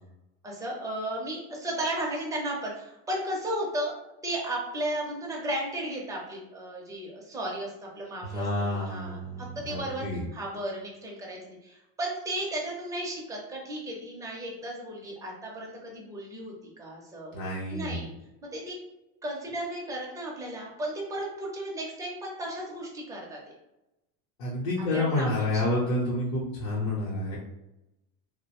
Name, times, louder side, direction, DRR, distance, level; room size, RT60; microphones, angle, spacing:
voice 1, 0.4-3.9 4.2-17.3 17.7-18.1 18.4-18.8 19.2-23.4 24.9-25.7, right 1 dB, 10° right, -3 dB, 0.5 m, -34 dB
voice 2, 8.2-10.2 17.3-18.1 24.4-27.4, left 1 dB, 50° left, -6 dB, 0.8 m, -29 dB
2.6 x 2.1 x 2.9 m, 0.93 s
cardioid pair, 145°, 39 cm